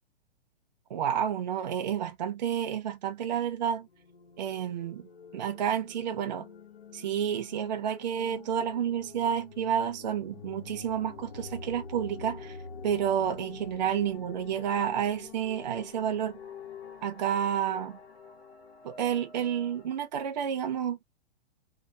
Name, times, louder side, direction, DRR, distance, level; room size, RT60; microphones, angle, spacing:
voice 1, 0.9-3.9 4.4-5.1 5.3-6.5 6.9-12.6 12.8-16.3 17.0-18.0 18.8-21.0, right 9 dB, 45° right, 0.5 m, -30 dB
sound 1, 3.8-19.9, left 5 dB, 80° left, 1.1 m, -46 dB
3.1 x 2.1 x 2.7 m
hypercardioid pair, 175°, 31 cm